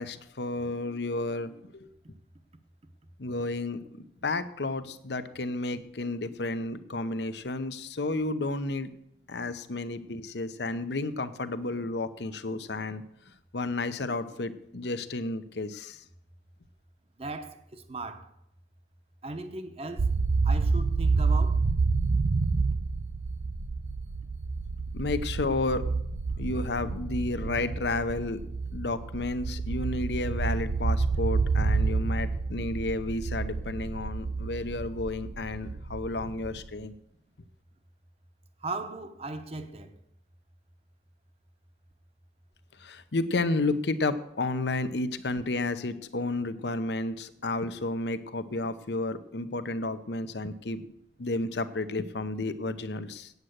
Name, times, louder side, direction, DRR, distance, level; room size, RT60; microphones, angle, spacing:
voice 1, 0.0-1.9 3.2-8.9 9.3-13.0 13.5-16.0 24.9-25.9 26.4-28.4 28.7-36.9 42.8-50.8 51.2-53.3, left 2 dB, 70° left, 0.8 m, -32 dB
voice 2, 17.2-18.3 19.2-20.1 20.4-21.7 38.6-39.9, right 2 dB, 35° right, 0.9 m, -37 dB
sound 1, 20.0-36.8, right 4 dB, 75° right, 0.6 m, -29 dB
8.9 x 8.1 x 8.0 m
head